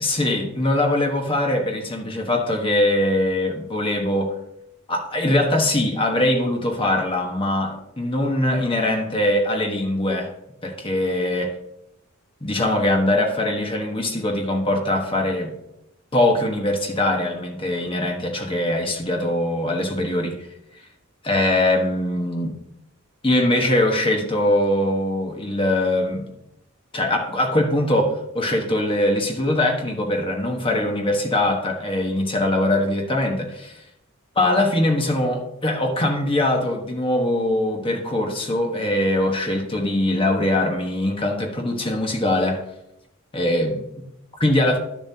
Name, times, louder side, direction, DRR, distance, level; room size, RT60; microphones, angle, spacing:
voice 1, 0.0-4.4 4.9-10.3 10.6-11.5 12.4-15.6 16.1-20.5 21.2-22.6 23.2-26.2 26.9-33.8 34.3-42.6 43.3-43.9 44.4-44.8, left 1 dB, 25° left, 2 dB, 1.3 m, -22 dB
11.5 x 7.2 x 2.8 m, 0.83 s
head